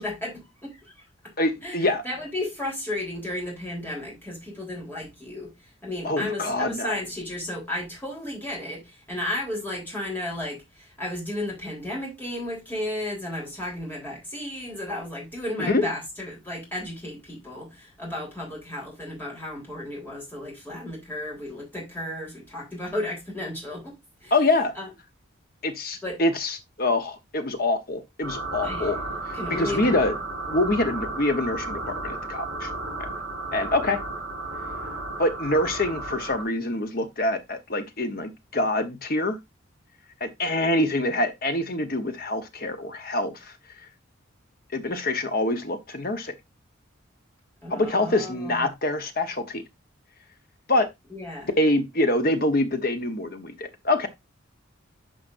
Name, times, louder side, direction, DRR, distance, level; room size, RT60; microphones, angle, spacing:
voice 1, 0.0-1.3 1.6-24.3 24.8-24.9 26.0-26.2 28.6-28.9 29.3-30.0 47.6-48.7 51.1-51.5, left 1 dB, 10° left, 3.6 m, -34 dB
voice 2, 1.4-2.0 6.0-6.9 15.6-15.9 24.3-24.7 25.6-29.0 29.5-30.1 30.5-32.7 33.0-33.1 33.5-34.0 35.2-39.4 40.2-43.5 44.7-46.3 47.7-49.6 50.7-50.9 51.6-54.1, left 2 dB, 45° left, 1.0 m, -25 dB
sound 1, 28.2-36.4, right 2 dB, 65° right, 5.2 m, -33 dB
10.0 x 5.1 x 2.6 m
head